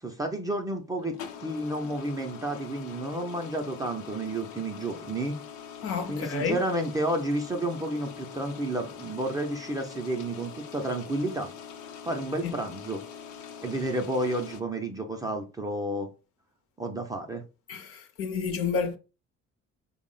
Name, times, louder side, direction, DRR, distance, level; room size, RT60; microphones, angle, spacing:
voice 1, 0.0-5.4 6.1-11.5 12.0-13.0 13.6-16.1 16.8-17.4, right 1 dB, 15° right, 0.4 m, -31 dB
sound 1, 0.9-14.6, left 7 dB, 90° left, 0.7 m, -43 dB
voice 2, 5.8-6.6 12.4-12.5 17.7-19.0, left 5 dB, 50° left, 0.6 m, -30 dB
4.4 x 2.1 x 3.7 m
cardioid pair, 170°, 29 cm